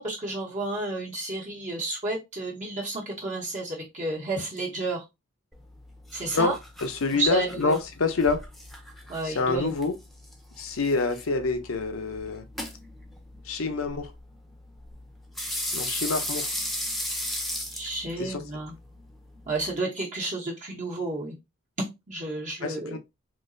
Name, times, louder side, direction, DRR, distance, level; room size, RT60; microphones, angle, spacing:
voice 1, 0.0-5.0 6.1-6.6 7.1-7.7 9.1-9.7 17.7-18.7 19.5-21.3 21.8-23.0, right 2 dB, 35° right, 1.0 m, -31 dB
sound 1, 5.5-19.8, left 1 dB, ahead, 0.7 m, -37 dB
voice 2, 6.3-8.5 9.2-9.9 10.6-12.5 13.4-14.1 15.7-16.5 18.2-18.4 22.6-23.0, left 4 dB, 80° left, 0.7 m, -27 dB
3.8 x 2.9 x 2.6 m
head